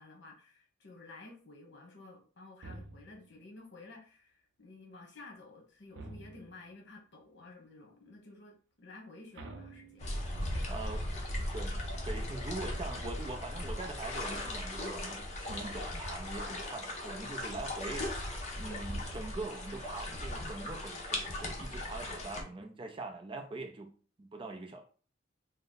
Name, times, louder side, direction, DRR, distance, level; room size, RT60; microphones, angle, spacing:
voice 1, 0.0-10.1 10.5-11.2, left 2 dB, 60° left, 1.1 m, -53 dB
sound 1, 2.6-3.4 5.9-6.7 9.3-10.5 15.5-16.1 18.8-19.7, right 2 dB, 70° right, 0.6 m, -49 dB
sound 2, 10.0-22.4, left 1 dB, 35° left, 0.9 m, -38 dB
voice 2, 10.7-11.0 11.5-18.2 18.6-23.9 24.2-24.8, right 2 dB, 25° right, 0.5 m, -43 dB
3.9 x 2.1 x 3.9 m
head